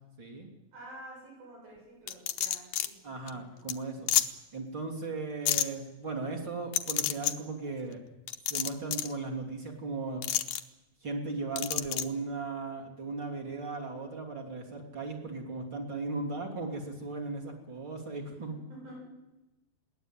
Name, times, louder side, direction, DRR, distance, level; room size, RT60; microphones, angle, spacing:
voice 1, 0.2-0.5 3.0-4.1 4.5-8.0 8.5-10.2 11.0-18.6, right 3 dB, 30° right, 0 dB, 3.5 m, -37 dB
voice 2, 0.7-4.1 18.3-19.0, right 1 dB, 75° right, -2 dB, 9.5 m, -50 dB
sound 1, 2.1-2.9 3.3-3.4 3.7-3.8 4.1-4.3 5.5-5.7 6.7-7.3 8.3-9.1 10.2-10.6 11.6-12.0, left 12 dB, 70° left, 1.9 m, -28 dB
21.5 x 16.5 x 9.1 m, 1.0 s
omnidirectional pair, 4.2 m